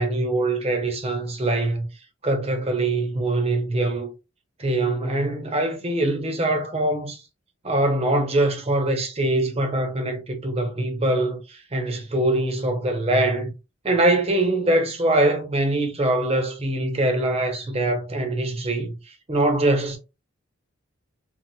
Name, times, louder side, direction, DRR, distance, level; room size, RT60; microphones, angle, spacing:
voice 1, 0.0-1.9 2.2-4.1 4.6-7.2 7.6-13.5 13.8-19.0 19.3-20.0, right 1 dB, 30° right, 0.7 m, -23 dB
4.0 x 2.4 x 2.2 m
head